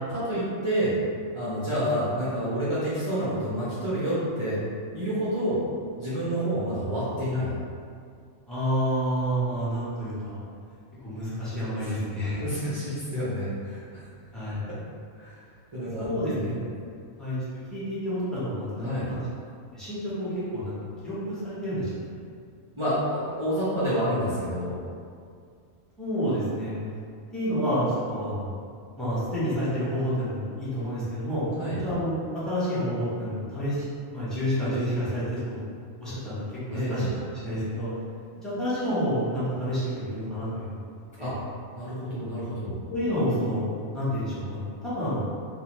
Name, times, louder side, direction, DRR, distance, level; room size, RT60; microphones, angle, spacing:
voice 1, 0.1-1.0 1.3-4.6 4.9-5.6 6.0-7.5 11.8-12.0 12.4-13.8 15.2-15.3 15.7-16.6 18.8-19.1 22.8-24.8 31.6-31.8 36.7-37.1 41.2-41.3 41.8-42.8, equal, 50° right, -13 dB, 0.3 m, -28 dB
voice 2, 8.5-10.4 11.0-12.4 14.3-14.6 16.0-16.7 17.2-17.4 17.7-19.3 19.7-20.8 21.0-21.9 26.0-26.7 27.3-28.5 29.0-31.5 31.8-33.9 34.1-35.6 36.0-37.9 38.4-40.8 41.2-41.3 42.9-43.7 43.9-45.3, equal, ahead, -13 dB, 0.6 m, -29 dB
2.5 x 2.2 x 3.0 m, 2.3 s
omnidirectional pair, 1.4 m